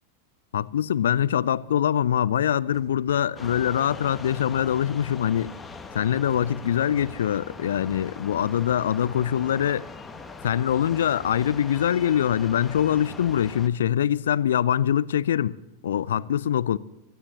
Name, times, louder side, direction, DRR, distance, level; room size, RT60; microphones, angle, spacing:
voice 1, 0.5-5.5 5.9-9.9 10.4-16.8, left 10 dB, 65° left, 0.5 m, -23 dB
sound 1, 2.7-3.7 6.3-7.2, right 1 dB, 10° right, 6.2 m, -49 dB
sound 2, 3.4-13.7, left 4 dB, 10° left, 1.4 m, -41 dB
27.0 x 14.5 x 2.9 m
figure-of-eight pair, 90°, 0 cm